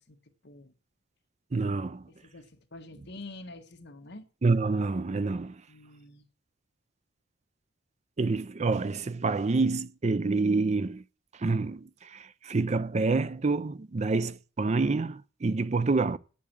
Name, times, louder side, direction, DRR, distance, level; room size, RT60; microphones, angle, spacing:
voice 1, 0.4-0.7 2.1-4.2 5.7-6.3, left 2 dB, 60° left, 1.4 m, -47 dB
voice 2, 1.5-2.0 4.4-5.6 8.2-11.0 11.4-16.2, right 3 dB, 35° right, 0.5 m, -27 dB
8.5 x 8.2 x 7.4 m
head